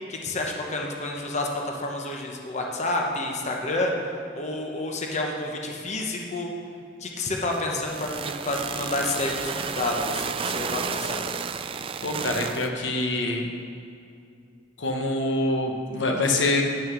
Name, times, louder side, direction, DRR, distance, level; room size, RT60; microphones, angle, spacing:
voice 1, 0.1-3.9 4.3-6.5 7.0-11.2, left 2 dB, 40° left, 0 dB, 1.0 m, -29 dB
sound 1, 7.5-12.7, right 6 dB, 30° right, 0.3 m, -32 dB
voice 2, 12.0-13.5 14.8-16.6, left 2 dB, 90° left, 2 dB, 1.1 m, -25 dB
10.5 x 6.4 x 6.1 m, 2.5 s
head